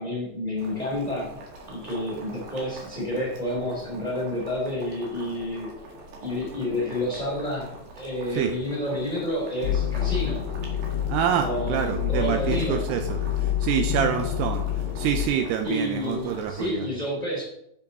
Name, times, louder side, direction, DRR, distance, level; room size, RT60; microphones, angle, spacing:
voice 1, 0.0-1.4 1.7-5.7 6.2-10.5 11.4-12.9 15.6-17.4, left 1 dB, 10° left, -5 dB, 2.7 m, -29 dB
Boiling, 0.6-16.7, right 2 dB, 60° right, 3.2 m, -44 dB
sound 1, 9.6-15.3, left 10 dB, 40° left, 3.0 m, -28 dB
voice 2, 11.1-14.6 15.0-16.9, right 9 dB, 80° right, 6 dB, 2.6 m, -27 dB
7.9 x 7.1 x 4.1 m, 0.80 s
omnidirectional pair, 5.0 m